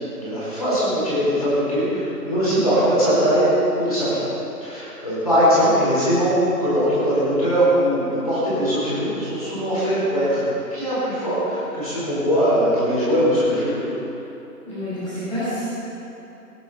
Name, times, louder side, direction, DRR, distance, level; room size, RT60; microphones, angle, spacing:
voice 1, 0.2-3.5 3.7-4.3 4.6-13.8, equal, 20° left, -11 dB, 4.3 m, -21 dB
voice 2, 14.6-15.7, equal, ahead, -27 dB, 3.8 m, -28 dB
20.0 x 10.0 x 5.5 m, 3.0 s
figure-of-eight pair, 180°, 48 cm